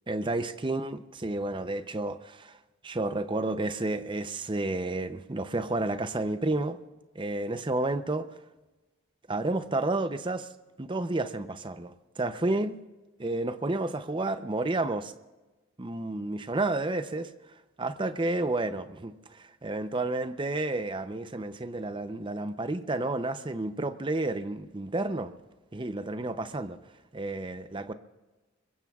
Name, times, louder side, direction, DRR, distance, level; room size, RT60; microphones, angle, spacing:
voice 1, 0.1-2.6 2.8-6.8 7.1-8.3 9.3-10.5 10.8-12.8 13.2-15.1 15.8-25.3 25.7-26.8 27.1-27.9, right 2 dB, 25° right, 0.6 m, -31 dB
26.0 x 22.5 x 2.4 m
head